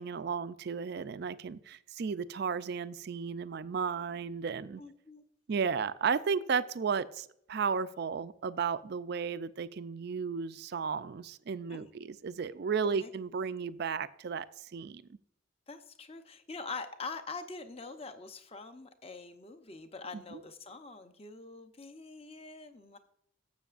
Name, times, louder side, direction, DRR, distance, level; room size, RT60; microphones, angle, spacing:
voice 1, 0.0-4.8 5.5-15.0 20.3-20.4, right 6 dB, 50° right, 0.4 m, -34 dB
voice 2, 4.8-5.2 11.7-11.9 12.8-13.1 15.7-23.0, left 4 dB, 30° left, 0.7 m, -44 dB
12.5 x 7.8 x 2.5 m
head